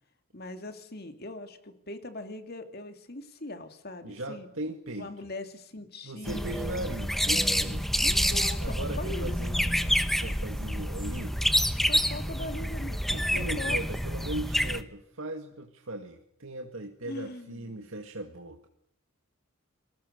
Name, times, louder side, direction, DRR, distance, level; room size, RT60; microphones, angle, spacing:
voice 1, 0.3-4.5 5.0-6.4 8.0-9.4 11.9-13.8 17.1-17.9, left 2 dB, 45° left, 7 dB, 2.5 m, -41 dB
voice 2, 4.0-5.1 6.0-8.0 8.6-11.5 13.1-18.7, right 1 dB, 70° right, 3 dB, 2.1 m, -38 dB
sound 1, 6.3-14.8, equal, ahead, 1.0 m, -28 dB
29.5 x 21.0 x 6.8 m, 0.76 s
head